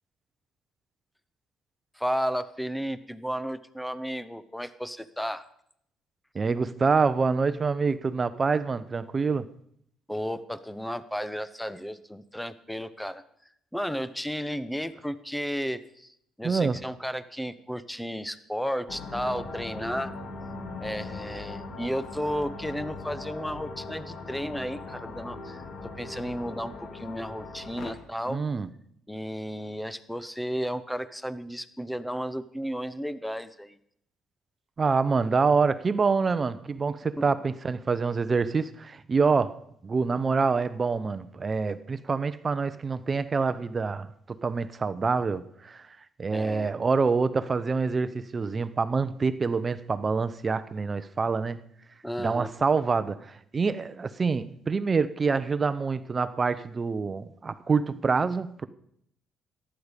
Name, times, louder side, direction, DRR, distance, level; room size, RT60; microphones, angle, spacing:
voice 1, 2.0-5.5 10.1-13.2 13.7-16.1 16.4-20.1 20.8-25.6 26.0-28.4 29.1-33.8 37.2-37.3 46.3-46.7 52.0-52.6, equal, 5° left, 1.0 m, -33 dB
voice 2, 6.3-9.5 16.4-16.8 28.3-28.7 34.8-45.9 46.2-51.6 52.2-58.7, right 4 dB, 35° right, 0.9 m, -26 dB
sound 1, 18.9-27.9, left 3 dB, 55° left, 2.5 m, -40 dB
14.5 x 11.5 x 5.2 m
supercardioid pair, 80°, 0 cm